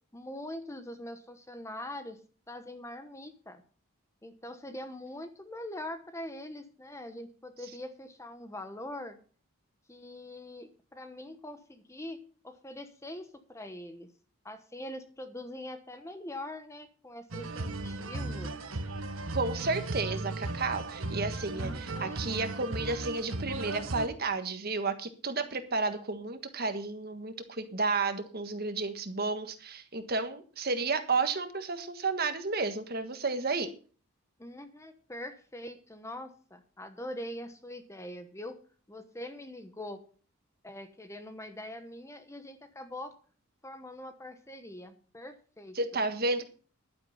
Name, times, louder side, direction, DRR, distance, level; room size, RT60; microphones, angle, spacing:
voice 1, 0.1-2.2 2.5-3.6 4.2-9.2 9.9-14.1 14.4-18.5 21.5-22.2 34.4-38.6 38.9-40.0 40.6-43.1 43.6-46.0, left 1 dB, 15° left, 9 dB, 1.0 m, -43 dB
sound 1, 17.3-24.1, right 2 dB, 80° right, 1.5 m, -36 dB
voice 2, 19.3-33.7 45.7-46.5, right 3 dB, 45° right, 8 dB, 1.5 m, -32 dB
11.5 x 9.6 x 5.6 m, 0.40 s
head